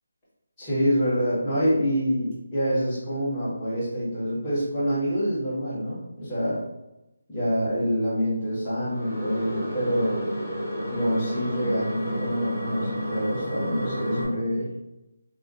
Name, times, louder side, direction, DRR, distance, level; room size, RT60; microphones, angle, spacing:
voice 1, 0.6-6.6 7.3-10.3 10.9-14.7, equal, 5° left, -14 dB, 1.0 m, -26 dB
sound 1, 8.9-14.2, equal, 15° right, 1.2 m, -31 dB
3.5 x 2.5 x 2.5 m, 0.93 s
figure-of-eight pair, 175°, 0 cm